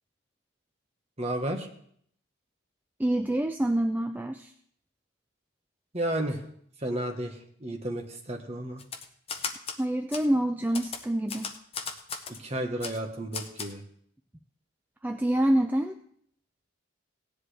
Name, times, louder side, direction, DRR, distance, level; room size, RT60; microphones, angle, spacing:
voice 1, 1.2-1.7 5.9-6.4 6.8-8.8 12.3-13.8, right 1 dB, 30° right, 3 dB, 1.3 m, -32 dB
voice 2, 3.0-4.5 9.8-11.5 15.0-16.0, right 1 dB, 10° right, 6 dB, 0.3 m, -26 dB
Typewriter, 8.8-9.8 10.1-10.3 10.7-12.4 12.8-13.0 13.3-13.7, left 5 dB, 30° left, 0.8 m, -36 dB
16.5 x 10.0 x 3.3 m, 0.65 s
head